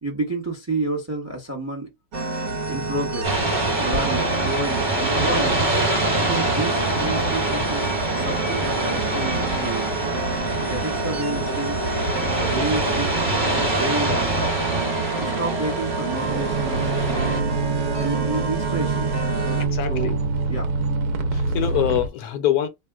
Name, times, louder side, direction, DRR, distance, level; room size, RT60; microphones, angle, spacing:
voice 1, 0.0-1.9 2.7-3.4 3.8-5.7 6.2-7.9 8.1-9.9 10.6-11.8 12.3-13.2 13.5-14.3 15.1-17.4 18.0-19.2 19.9-20.2 20.5-20.7, right 2 dB, 15° right, 0.6 m, -30 dB
sound 1, 2.1-19.6, right 3 dB, 55° right, 1.0 m, -29 dB
sound 2, 3.2-17.4, right 2 dB, 35° right, 1.2 m, -25 dB
sound 3, 16.3-22.1, right 4 dB, 75° right, 1.1 m, -25 dB
voice 2, 19.7-20.2 21.3-22.7, left 11 dB, 75° left, 1.0 m, -24 dB
2.8 x 2.1 x 3.3 m
omnidirectional pair, 1.7 m